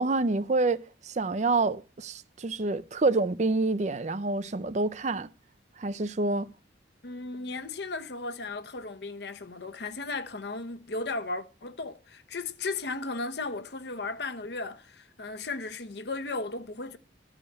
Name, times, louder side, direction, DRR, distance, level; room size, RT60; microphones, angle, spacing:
voice 1, 0.0-5.3 5.8-6.5, right 3 dB, 40° right, 0.5 m, -27 dB
voice 2, 7.0-17.0, left 3 dB, 65° left, 1.0 m, -35 dB
14.0 x 5.0 x 8.7 m
head